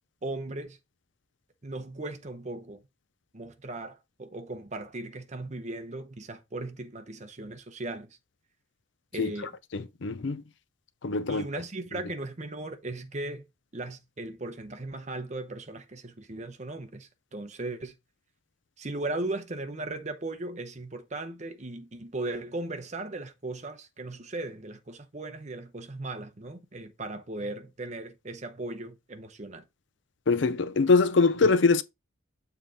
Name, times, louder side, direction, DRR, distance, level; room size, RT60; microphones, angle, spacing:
voice 1, 0.2-0.8 1.6-2.8 3.3-8.1 9.1-9.6 11.3-13.5 13.7-17.9 18.8-29.6, right 2 dB, 35° right, 0.8 m, -37 dB
voice 2, 9.7-10.4 11.0-11.4 30.3-31.8, left 4 dB, 65° left, 0.6 m, -23 dB
7.0 x 3.8 x 4.1 m
head